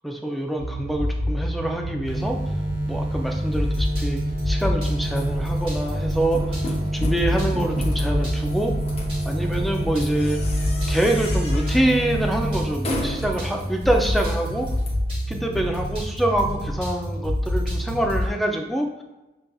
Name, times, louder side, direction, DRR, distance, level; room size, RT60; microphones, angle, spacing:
voice 1, 0.0-2.4 2.9-8.7 9.3-10.4 10.9-14.7 15.3-19.0, right 1 dB, ahead, 2 dB, 0.3 m, -25 dB
sound 1, 0.6-18.3, equal, 30° right, 1.2 m, -28 dB
sound 2, 2.0-12.7, right 1 dB, 70° right, 0.6 m, -28 dB
sound 3, 5.0-14.9, left 1 dB, 35° left, 0.7 m, -36 dB
6.8 x 2.5 x 2.3 m, 1.1 s
head